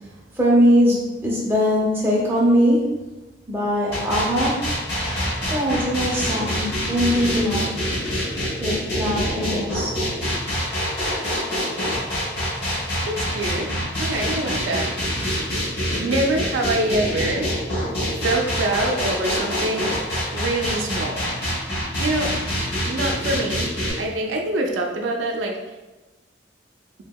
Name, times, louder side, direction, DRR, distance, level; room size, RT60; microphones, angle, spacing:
voice 1, 0.3-3.0 3.5-4.7 5.5-7.7 8.6-9.9, equal, 10° right, -5 dB, 0.5 m, -21 dB
sound 1, 3.9-23.9, equal, 60° left, 1.0 m, -25 dB
voice 2, 13.0-13.7 14.0-14.9 16.0-17.5 18.2-19.9 20.3-21.3 22.0-22.3 22.9-23.7 24.0-25.5, right 2 dB, 85° right, 1 dB, 0.4 m, -25 dB
2.7 x 2.7 x 2.2 m, 1.1 s
head